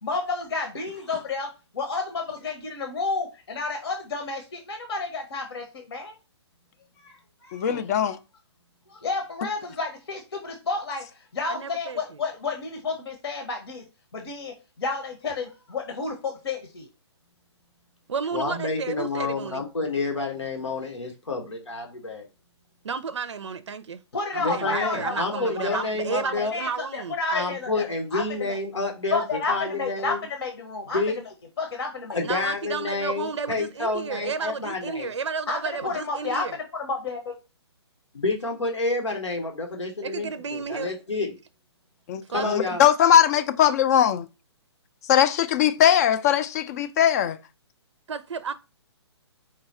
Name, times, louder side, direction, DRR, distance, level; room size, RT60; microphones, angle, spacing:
voice 1, 0.0-6.2 7.0-7.8 8.1-8.2 8.9-13.8 14.1-16.9 24.1-25.4 25.7-25.8 26.5-27.8 28.1-28.6 29.1-31.0 31.6-32.2 35.5-36.5 36.7-37.2, left 3 dB, 65° left, 1.0 m, -31 dB
voice 2, 7.5-8.2 42.1-44.3 45.1-47.4, left 10 dB, 35° left, 0.4 m, -20 dB
voice 3, 11.5-12.2 18.1-19.6 22.8-24.0 24.3-27.2 32.2-36.5 40.0-40.9 42.3-42.6 48.1-48.5, right 5 dB, 80° right, 0.4 m, -32 dB
voice 4, 18.3-22.3 24.4-26.5 27.3-29.2 29.5-30.2 30.9-31.2 32.1-35.1 38.2-41.4 42.3-42.8, left 3 dB, 85° left, 1.2 m, -29 dB
4.8 x 2.3 x 4.2 m
figure-of-eight pair, 135°, 15 cm